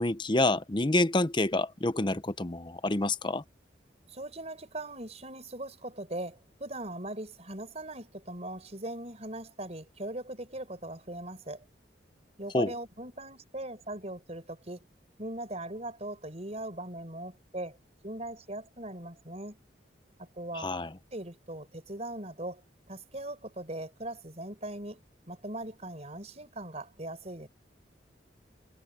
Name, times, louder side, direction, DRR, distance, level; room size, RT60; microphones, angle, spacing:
voice 1, 0.0-3.4 12.5-12.7 20.5-20.9, left 2 dB, 25° left, 0.8 m, -27 dB
voice 2, 4.1-11.6 12.4-14.8 15.2-17.8 18.0-19.6 20.2-20.7 21.1-22.6 22.9-25.0 25.3-27.5, right 1 dB, 35° right, 5.1 m, -40 dB
head